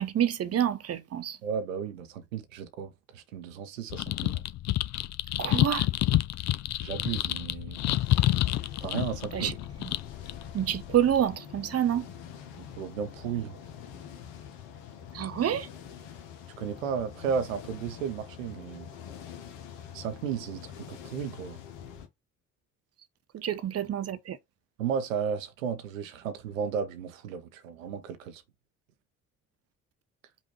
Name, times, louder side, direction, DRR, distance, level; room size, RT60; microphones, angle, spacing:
voice 1, 0.0-1.4 5.4-5.9 9.3-9.9 10.5-12.1 15.1-15.7 23.3-24.4, right 10 dB, 40° right, 0.9 m, -28 dB
voice 2, 1.4-4.4 6.8-7.8 8.8-9.5 12.6-13.6 16.6-18.9 19.9-21.6 24.8-28.4, right 7 dB, 80° right, 0.7 m, -34 dB
sound 1, 3.9-11.3, left 15 dB, 45° left, 0.5 m, -29 dB
sound 2, 7.8-22.1, left 8 dB, 70° left, 1.0 m, -45 dB
5.4 x 2.6 x 3.0 m
figure-of-eight pair, 50°, 39 cm